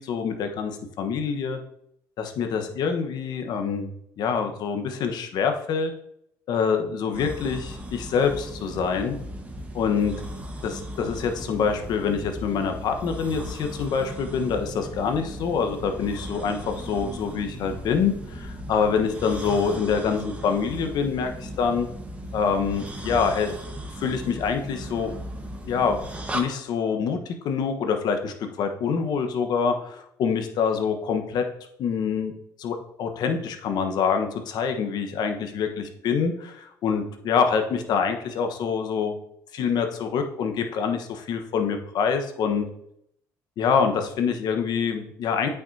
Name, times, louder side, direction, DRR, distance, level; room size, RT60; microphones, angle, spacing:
voice 1, 0.0-1.6 2.2-3.9 4.2-5.9 6.5-9.2 9.7-10.1 10.6-21.9 22.3-23.5 24.0-25.1 25.7-26.0 26.3-31.4 31.8-32.3 32.6-39.1 39.5-42.7 43.6-45.5, left 6 dB, 65° left, 6 dB, 1.1 m, -25 dB
sound 1, 7.1-26.4, right 1 dB, 15° right, 1.3 m, -37 dB
8.5 x 6.0 x 2.7 m, 0.72 s
supercardioid pair, 80°, 8 cm